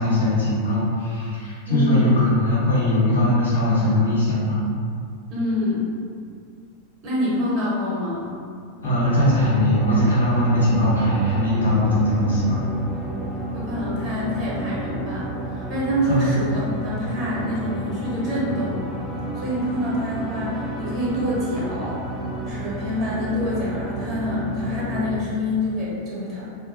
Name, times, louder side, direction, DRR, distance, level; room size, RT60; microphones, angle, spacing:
voice 1, 0.0-4.6 8.8-12.6 16.1-16.3, left 1 dB, 75° left, -9 dB, 0.9 m, -20 dB
voice 2, 1.7-2.2 5.3-5.8 7.0-8.4 12.1-12.3 13.5-18.8 19.3-22.0 22.4-26.4, left 1 dB, 35° right, -7 dB, 0.8 m, -26 dB
sound 1, 8.8-25.2, right 1 dB, 10° right, 0.4 m, -31 dB
2.7 x 2.1 x 2.5 m, 2.3 s
figure-of-eight pair, 90°, 0 cm